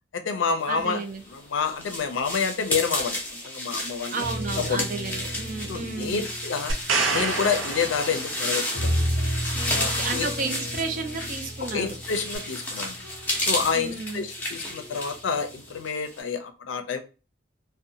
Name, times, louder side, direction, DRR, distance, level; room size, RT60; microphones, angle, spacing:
voice 1, 0.1-1.0 1.3-4.3 4.6-4.9 5.7-6.7 7.1-9.1 9.7-10.3 11.6-13.0 13.5-17.0, left 5 dB, 75° left, 8 dB, 0.4 m, -28 dB
voice 2, 0.7-1.2 4.1-6.3 9.8-12.0 13.7-14.3, right 3 dB, 45° right, 6 dB, 0.4 m, -32 dB
sound 1, 1.0-16.2, left 1 dB, 10° left, 0.5 m, -32 dB
sound 2, 4.2-8.3 8.7-14.2 14.7-15.2, equal, 70° right, 0.8 m, -33 dB
sound 3, 6.7-8.7 12.3-12.4, right 4 dB, 90° right, 0.6 m, -27 dB
2.6 x 2.1 x 2.6 m, 0.32 s
head